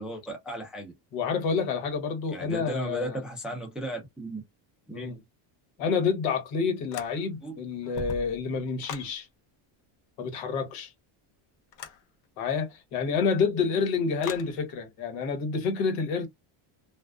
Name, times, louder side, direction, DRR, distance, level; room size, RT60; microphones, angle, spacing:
voice 1, 0.0-0.9 2.3-4.4 4.9-5.1 7.4-7.6, right 1 dB, ahead, 0.4 m, -35 dB
voice 2, 1.1-3.2 4.9-5.2 5.8-9.3 10.2-10.9 12.4-16.3, left 5 dB, 80° left, 1.2 m, -28 dB
sound 1, 6.9-7.5 7.8-9.2 11.7-12.0 14.2-14.5, left 6 dB, 60° left, 0.8 m, -39 dB
2.4 x 2.4 x 2.3 m
cardioid pair, 140°, 49 cm